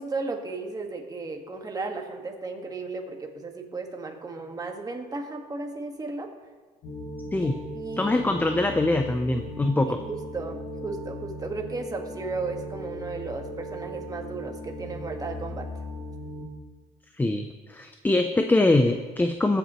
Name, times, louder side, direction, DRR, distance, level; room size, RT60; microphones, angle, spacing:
voice 1, 0.0-6.3 7.4-7.5 7.7-8.1 9.9-15.7, right 3 dB, 20° right, 2 dB, 1.6 m, -35 dB
sound 1, 6.8-16.5, equal, 70° left, 2.5 m, -38 dB
voice 2, 8.0-10.0 17.2-19.6, left 2 dB, 10° left, 6 dB, 0.6 m, -23 dB
20.5 x 8.2 x 3.1 m, 1.4 s
cardioid pair, 110°, 17 cm